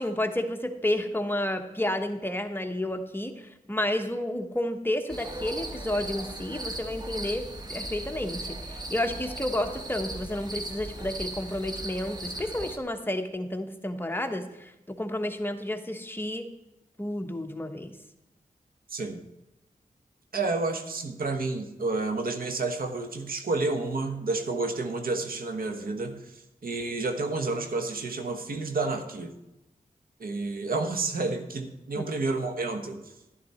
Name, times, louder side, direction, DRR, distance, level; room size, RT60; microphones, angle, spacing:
voice 1, 0.0-7.4 7.7-14.7 15.0-16.5 17.0-17.9 32.0-32.1, left 1 dB, 15° left, 5 dB, 1.2 m, -31 dB
sound 1, 5.1-12.8, right 1 dB, 30° right, 1.5 m, -37 dB
voice 2, 20.3-29.3 30.2-33.0, right 3 dB, 80° right, 6 dB, 1.3 m, -30 dB
11.5 x 11.5 x 4.3 m, 0.92 s
wide cardioid pair, 75°, 15 cm